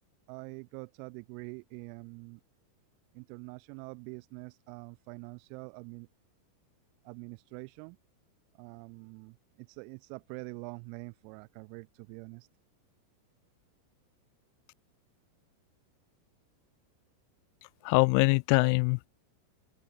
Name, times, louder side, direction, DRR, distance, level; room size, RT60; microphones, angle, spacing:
voice 1, 0.3-2.4 3.1-6.1 7.0-8.0 8.5-12.5, right 40 dB or more, 45° right, 3.6 m, -45 dB
voice 2, 17.8-19.1, left 39 dB, 45° left, 0.7 m, -24 dB
figure-of-eight pair, 90°, 0 cm